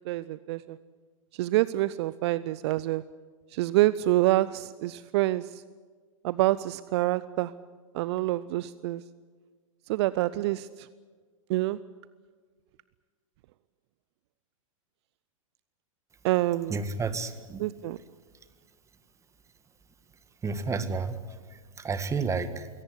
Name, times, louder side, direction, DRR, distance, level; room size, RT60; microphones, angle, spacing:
voice 1, 0.1-0.8 1.3-3.0 3.5-5.6 6.2-7.5 7.9-9.0 9.9-10.9 11.5-11.8 16.2-16.8 17.6-18.0, right 16 dB, 55° right, 17 dB, 0.7 m, -27 dB
voice 2, 16.7-17.7 20.4-22.7, right 4 dB, 15° right, 11 dB, 1.8 m, -31 dB
23.0 x 17.5 x 9.8 m, 1.5 s
hypercardioid pair, 105°, 17 cm